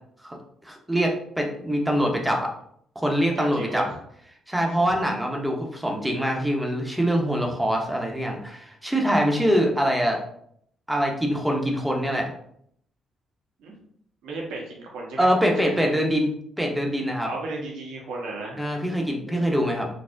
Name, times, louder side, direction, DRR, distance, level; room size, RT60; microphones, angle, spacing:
voice 1, 0.6-2.5 3.0-3.9 4.5-10.2 10.9-12.3 15.2-16.3 16.6-17.3 18.6-19.9, equal, 5° right, 1 dB, 0.7 m, -24 dB
voice 2, 3.4-4.0 4.6-4.8 13.6-13.7 14.2-15.3 15.6-15.9 17.2-18.7 19.3-19.5, right 3 dB, 90° right, -2 dB, 1.0 m, -34 dB
4.1 x 2.0 x 2.5 m, 0.69 s
cardioid pair, 90°, 0 cm